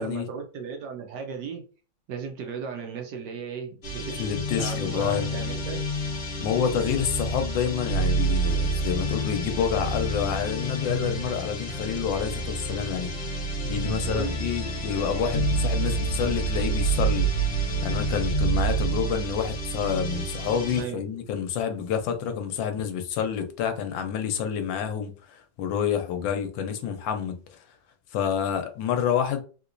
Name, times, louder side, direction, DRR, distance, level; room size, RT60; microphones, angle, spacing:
voice 1, 0.0-1.6 2.1-5.8 14.0-14.4 20.7-21.0, right 6 dB, 70° right, 1.1 m, -36 dB
sound 1, 3.8-20.8, right 2 dB, 40° left, 1.1 m, -28 dB
voice 2, 4.2-5.3 6.4-13.1 13.7-17.3 17.8-27.4 28.1-29.4, left 8 dB, 80° left, 1.3 m, -28 dB
3.4 x 2.9 x 2.5 m
omnidirectional pair, 2.1 m